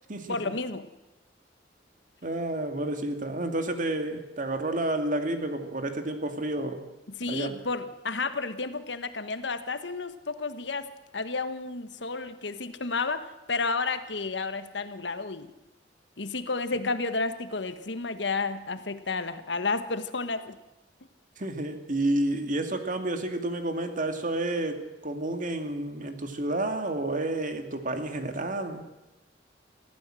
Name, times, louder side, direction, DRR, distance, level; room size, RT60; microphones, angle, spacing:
voice 1, 0.3-0.9 7.1-10.9 11.1-15.5 16.2-20.6, left 3 dB, 80° left, 10 dB, 1.4 m, -31 dB
voice 2, 2.2-6.8 7.3-7.5 21.4-28.9, right 1 dB, 50° right, 6 dB, 2.4 m, -30 dB
23.0 x 15.0 x 7.7 m, 1.0 s
head